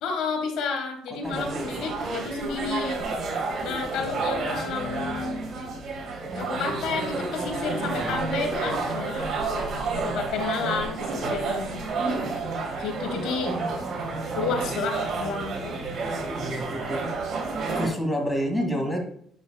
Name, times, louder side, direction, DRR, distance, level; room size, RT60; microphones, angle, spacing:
voice 1, 0.0-3.0 3.6-5.4 6.3-9.3 9.9-11.8 12.8-13.5 14.3-15.8, left 4 dB, 75° left, 4 dB, 1.3 m, -31 dB
voice 2, 1.2-1.7 4.6-5.5 13.1-13.7 16.3-17.1 17.7-19.0, equal, 10° left, 1 dB, 2.0 m, -30 dB
sound 1, 1.2-17.9, right 3 dB, 50° right, 2.3 m, -30 dB
10.5 x 5.4 x 2.2 m, 0.64 s
cardioid pair, 100°, 0 cm